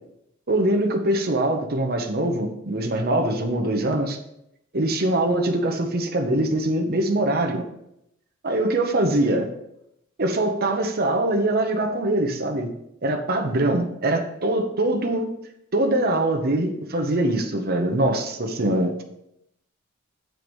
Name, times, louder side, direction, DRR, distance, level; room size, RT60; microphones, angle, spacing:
voice 1, 0.5-4.2 4.7-7.6 8.4-9.5 10.2-12.7 13.0-15.3 15.7-19.0, right 1 dB, 45° right, 4 dB, 0.9 m, -23 dB
7.8 x 4.7 x 5.2 m, 0.79 s
head